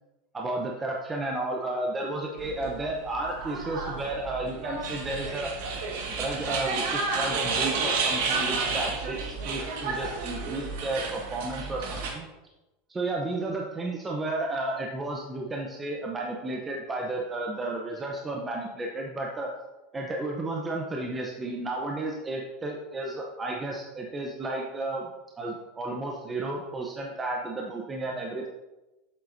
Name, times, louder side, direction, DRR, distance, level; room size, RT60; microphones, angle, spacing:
voice 1, 0.3-5.5 6.1-12.3 12.9-19.5 19.9-25.1 25.4-28.5, right 2 dB, 15° right, -1 dB, 0.7 m, -32 dB
sound 1, 2.4-12.1, right 4 dB, 70° right, 1.5 m, -31 dB
7.5 x 7.5 x 2.6 m, 1.0 s
supercardioid pair, 160°, 0 cm